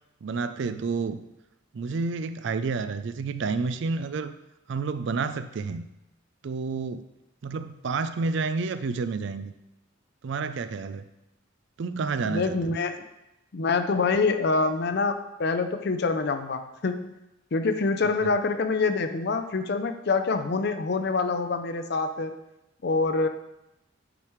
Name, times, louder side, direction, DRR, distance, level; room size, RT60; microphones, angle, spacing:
voice 1, 0.2-1.2 1.7-4.3 4.7-5.9 6.4-7.0 7.4-9.5 10.2-11.1 11.8-12.8 18.2-18.3, right 4 dB, 60° right, 12 dB, 0.4 m, -30 dB
voice 2, 12.2-13.0 13.5-17.2 17.5-22.3 22.8-23.3, left 4 dB, 55° left, 8 dB, 0.5 m, -26 dB
8.8 x 5.0 x 3.1 m, 0.92 s
head